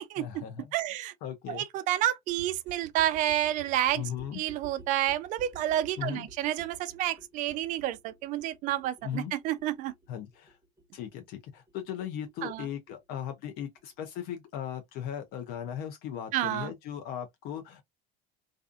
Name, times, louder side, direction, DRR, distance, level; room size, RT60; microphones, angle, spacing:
voice 1, 0.2-0.6 1.2-1.6 3.9-4.4 6.0-6.3 9.0-9.3 10.1-10.6 10.9-17.8, left 9 dB, 55° left, 0.5 m, -37 dB
voice 2, 0.7-1.1 1.5-4.0 4.3-9.9 12.4-12.7 16.3-16.7, right 13 dB, 45° right, 0.4 m, -29 dB
sound 1, 2.3-13.8 14.1-14.2 14.4-14.5 14.7-14.8 15.0-15.1 15.3-15.4 15.6-15.7, right 3 dB, 10° right, 1.1 m, -53 dB
2.4 x 2.4 x 2.4 m
cardioid pair, 145°, 19 cm